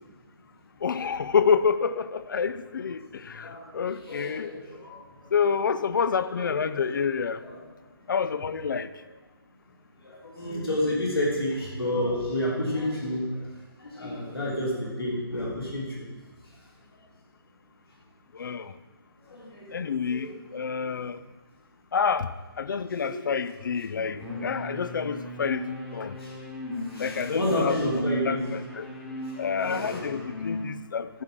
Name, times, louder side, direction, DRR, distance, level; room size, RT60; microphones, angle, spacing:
voice 1, 0.8-4.5 5.3-7.4 8.1-8.9 18.3-18.7 19.7-21.2 21.9-25.7 25.9-26.2 27.0-27.8 28.2-28.9 29.4-31.2, left 6 dB, 55° left, 15 dB, 0.5 m, -28 dB
voice 2, 3.3-3.8 4.0-5.4 6.3-6.5 7.0-7.1 7.4-7.6 10.0-16.0 19.2-20.4 20.9-21.0 22.9-23.2 23.9-24.3 26.2-26.4 26.8-28.4 29.2-29.4 29.6-30.2, left 1 dB, 75° left, -4 dB, 3.1 m, -31 dB
sound 1, 24.2-30.6, left 1 dB, 10° left, 1.3 m, -35 dB
13.5 x 5.9 x 4.9 m, 1.3 s
figure-of-eight pair, 140°, 13 cm